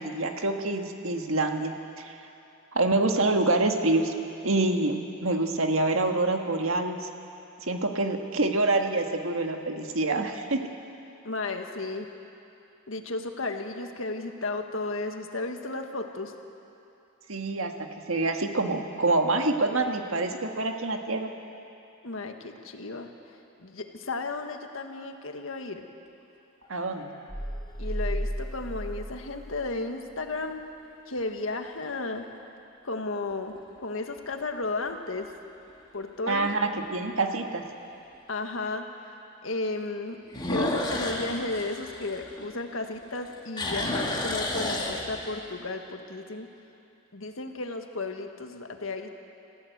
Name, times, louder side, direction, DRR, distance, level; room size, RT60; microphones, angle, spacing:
voice 1, 0.0-2.1 2.7-4.1 4.4-5.0 5.2-7.1 7.6-10.6 17.3-21.3 26.7-27.1 36.3-37.6, right 2 dB, 80° right, 4 dB, 1.7 m, -26 dB
voice 2, 11.2-12.1 12.9-16.3 22.0-25.9 27.8-30.6 31.1-32.2 32.8-33.5 33.8-35.3 35.9-36.5 38.3-38.8 39.4-40.2 40.4-46.5 47.1-49.1, left 2 dB, 75° left, 5 dB, 1.7 m, -34 dB
sound 1, 26.6-27.3 28.0-28.1 33.3-33.8 34.2-34.3 34.9-35.0 35.3-35.4 36.9-37.0 40.3-42.8 43.2-45.5, left 2 dB, 20° left, 2.3 m, -31 dB
sound 2, 27.3-30.0, equal, ahead, 1.3 m, -34 dB
27.0 x 15.5 x 8.1 m, 2.8 s
head